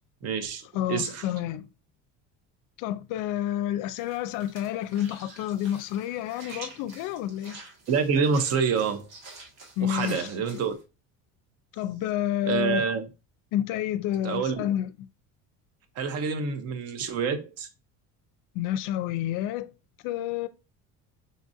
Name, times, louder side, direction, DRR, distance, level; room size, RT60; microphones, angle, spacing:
voice 1, 0.2-0.6 0.9-1.2 7.9-9.1 9.8-10.7 12.4-13.0 14.2-14.7 16.0-17.7, right 5 dB, 45° right, 0.7 m, -27 dB
voice 2, 0.7-1.6 2.8-7.6 9.8-10.6 11.7-12.8 13.5-14.9 18.5-19.7 20.0-20.5, left 12 dB, 65° left, 0.5 m, -29 dB
sound 1, 4.0-10.8, right 3 dB, 75° right, 1.7 m, -47 dB
5.2 x 2.5 x 2.6 m
cardioid pair, 135°, 34 cm